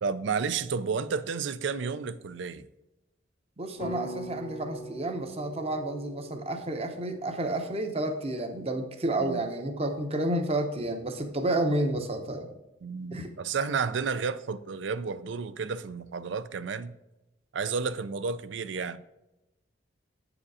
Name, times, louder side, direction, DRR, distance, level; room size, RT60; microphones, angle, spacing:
voice 1, 0.0-2.6 9.2-9.4 12.8-17.0 17.5-19.0, right 5 dB, 65° right, 0.4 m, -31 dB
voice 2, 3.6-12.5 13.1-13.3, right 1 dB, 30° right, 0.8 m, -30 dB
sound 1, 3.8-8.1, right 1 dB, 35° left, 0.7 m, -42 dB
8.6 x 5.0 x 4.8 m
head